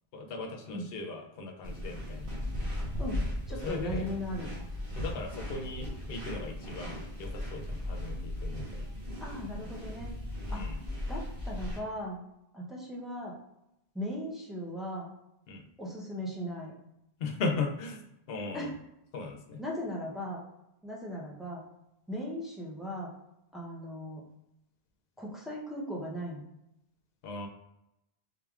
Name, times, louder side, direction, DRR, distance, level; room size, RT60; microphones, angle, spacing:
voice 1, 0.1-2.3 3.6-4.1 5.0-8.9 10.5-10.8 15.5-15.7 17.2-18.7 19.1-19.6 27.2-27.5, left 3 dB, 70° left, 3 dB, 0.8 m, -38 dB
sound 1, 1.6-11.8, left 1 dB, 65° right, 1.3 m, -37 dB
voice 2, 3.0-4.5 9.2-10.1 10.5-10.6 11.1-12.2 12.5-13.4 13.9-15.1 15.8-16.7 18.5-18.7 19.6-20.4 20.8-21.6 22.1-23.1 23.5-24.2 25.2-26.4, equal, ahead, -4 dB, 0.5 m, -38 dB
3.6 x 3.3 x 2.3 m, 0.84 s
omnidirectional pair, 1.0 m